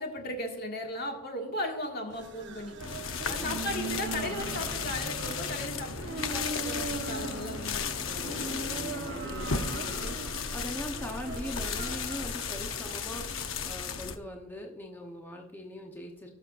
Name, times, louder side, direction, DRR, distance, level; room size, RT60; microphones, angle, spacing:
voice 1, 0.0-2.8 3.3-8.4, left 1 dB, 50° left, 2 dB, 1.8 m, -37 dB
sound 1, 2.1-13.3, right 3 dB, 60° right, 0.8 m, -40 dB
sound 2, 2.8-14.2, left 5 dB, 90° left, 0.8 m, -35 dB
voice 2, 3.2-3.9 8.1-16.3, left 1 dB, 10° left, 0 dB, 0.8 m, -41 dB
18.5 x 6.4 x 2.5 m, 1.2 s
head